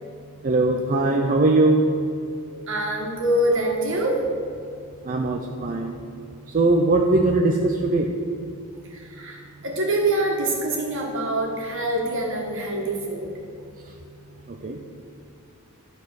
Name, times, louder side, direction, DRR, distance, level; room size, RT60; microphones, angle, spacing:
voice 1, 0.4-1.8 5.0-5.9 6.5-8.1 14.5-14.8, right 2 dB, 40° right, 1 dB, 0.5 m, -20 dB
voice 2, 2.7-4.2 8.9-13.3, right 1 dB, 60° right, -1 dB, 1.8 m, -25 dB
12.0 x 4.2 x 6.3 m, 2.6 s
head